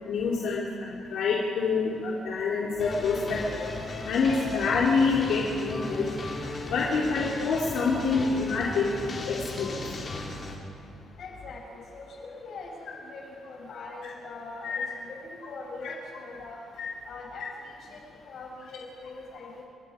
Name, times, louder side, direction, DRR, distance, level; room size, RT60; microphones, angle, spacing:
voice 1, 0.0-3.7 4.0-6.1 6.7-8.9 9.3-9.8 14.6-14.9 16.8-16.9, left 4 dB, 85° left, -4 dB, 3.1 m, -27 dB
sound 1, 2.8-10.5, left 2 dB, 35° left, 4.0 m, -36 dB
voice 2, 11.2-16.6 17.0-19.6, left 3 dB, 60° left, -2 dB, 7.7 m, -42 dB
29.5 x 23.0 x 5.1 m, 2.5 s
cardioid pair, 145°, 0 cm